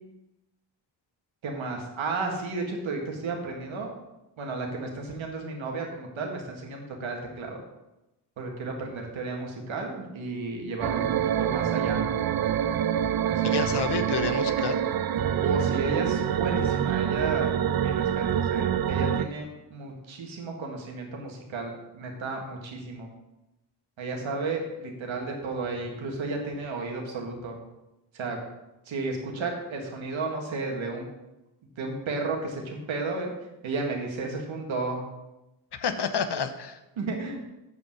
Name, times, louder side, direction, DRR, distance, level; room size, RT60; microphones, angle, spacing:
voice 1, 1.4-3.9 4.4-7.6 8.4-11.1 11.4-12.0 13.3-13.7 15.4-17.5 17.8-23.1 24.0-27.6 28.1-28.4 28.9-31.1 31.8-33.3 33.6-35.0 37.0-37.4, right 3 dB, 80° right, 1 dB, 1.9 m, -33 dB
sound 1, 10.8-19.3, right 9 dB, 50° right, 0.6 m, -26 dB
voice 2, 13.4-14.8 35.7-36.8, left 6 dB, 60° left, 9 dB, 1.0 m, -29 dB
8.2 x 5.4 x 6.0 m, 0.97 s
supercardioid pair, 45°, 46 cm